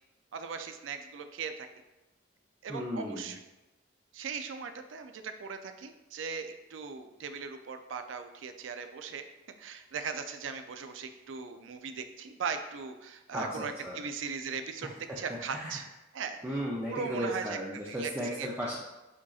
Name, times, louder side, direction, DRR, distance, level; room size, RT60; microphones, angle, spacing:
voice 1, 0.3-1.5 2.6-3.4 4.1-9.3 9.6-15.9 16.1-16.4 16.9-17.6 17.9-18.5, right 5 dB, 80° right, 8 dB, 0.4 m, -39 dB
voice 2, 2.7-3.3 13.3-14.0 15.1-15.2 15.5-15.8 16.4-18.8, equal, 10° right, -5 dB, 0.5 m, -35 dB
5.0 x 4.1 x 2.4 m, 1.0 s
head